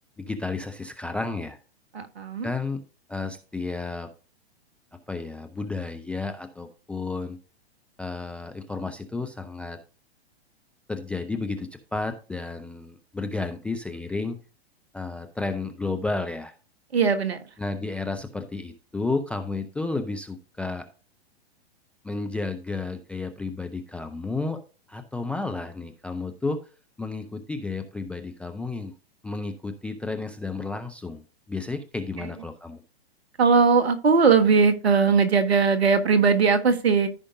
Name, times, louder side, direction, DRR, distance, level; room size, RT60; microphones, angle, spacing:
voice 1, 0.2-1.6 2.4-2.8 3.1-4.1 5.1-7.4 8.0-9.8 10.9-14.4 14.9-16.5 17.6-20.9 22.0-24.6 24.9-26.6 27.0-28.9 29.2-31.2 31.5-32.8, left 3 dB, 5° left, 0.3 m, -32 dB
voice 2, 1.9-2.5 16.9-17.4 32.2-32.3 33.4-37.1, right 5 dB, 75° right, 1.4 m, -20 dB
14.0 x 5.1 x 2.6 m
hypercardioid pair, 110°, 31 cm